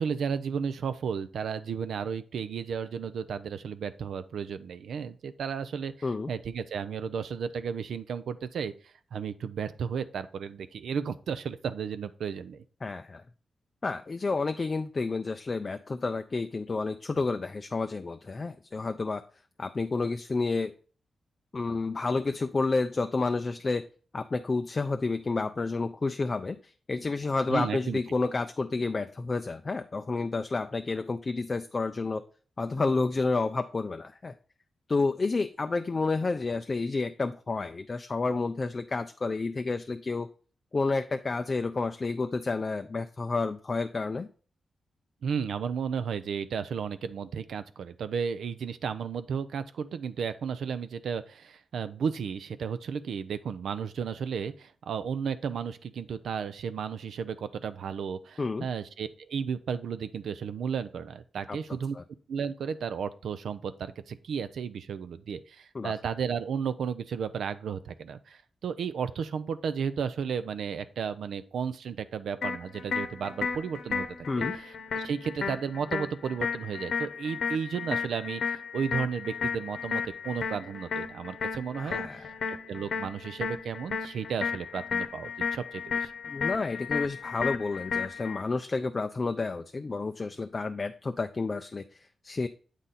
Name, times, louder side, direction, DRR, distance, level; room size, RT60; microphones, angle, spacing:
voice 1, 0.0-12.6 27.5-28.0 45.2-62.0 62.3-86.1, right 6 dB, 85° right, 11 dB, 0.5 m, -33 dB
voice 2, 12.8-13.2 13.8-19.2 19.6-20.7 21.5-23.9 24.1-32.2 32.6-34.3 34.9-40.3 40.7-44.3 58.4-58.7 61.5-61.6 61.9-62.0 65.7-65.9 74.3-74.5 81.8-82.3 86.3-92.5, left 3 dB, 30° left, 8 dB, 0.3 m, -30 dB
sound 1, 72.4-88.4, left 6 dB, 65° left, 0.8 m, -34 dB
8.1 x 3.8 x 4.1 m, 0.39 s
wide cardioid pair, 140°, 0 cm